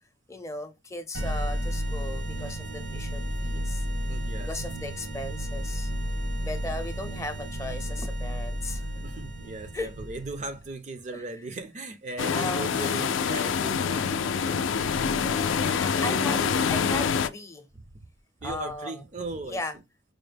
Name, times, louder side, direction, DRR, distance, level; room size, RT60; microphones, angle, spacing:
voice 1, 0.3-3.9 4.5-5.9 6.4-8.9 9.7-9.9 11.1-11.2 12.3-12.7 15.2-16.4 16.7-17.7 18.4-19.0 19.4-19.8, left 2 dB, 15° left, 0.6 m, -37 dB
sound 1, 1.1-10.6, equal, 80° right, 1.1 m, -32 dB
voice 2, 4.1-4.7 6.4-6.8 8.7-14.4 14.9-15.3 15.6-16.7 18.4-19.6, right 2 dB, 35° right, 0.5 m, -38 dB
sound 2, 12.2-17.3, left 6 dB, 80° left, 0.4 m, -26 dB
4.9 x 2.1 x 3.2 m
head